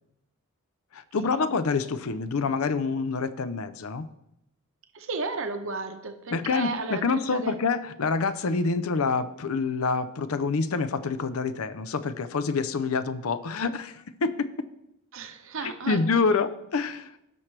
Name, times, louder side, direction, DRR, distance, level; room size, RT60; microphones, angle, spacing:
voice 1, 0.9-4.1 6.3-14.7 15.6-17.1, left 4 dB, 70° left, 13 dB, 0.6 m, -27 dB
voice 2, 4.9-7.5 15.1-16.4, right 3 dB, 60° right, 6 dB, 0.8 m, -34 dB
17.0 x 5.9 x 3.3 m, 0.84 s
head